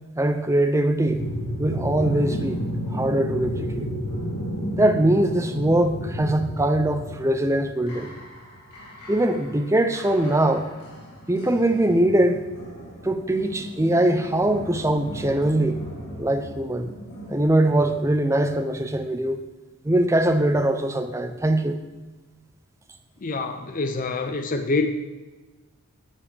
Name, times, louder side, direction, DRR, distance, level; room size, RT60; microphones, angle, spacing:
voice 1, 0.2-1.2 1.6-2.6 2.9-3.9 4.8-8.1 9.1-10.7 11.3-12.4 13.0-15.8 16.2-16.9 17.3-19.4 19.8-21.8, right 1 dB, 15° right, 7 dB, 0.6 m, -22 dB
sound 1, 1.0-17.4, equal, 85° left, 3.4 m, -33 dB
voice 2, 23.2-24.9, left 3 dB, 35° left, 7 dB, 0.5 m, -26 dB
9.9 x 6.8 x 5.2 m, 1.2 s
head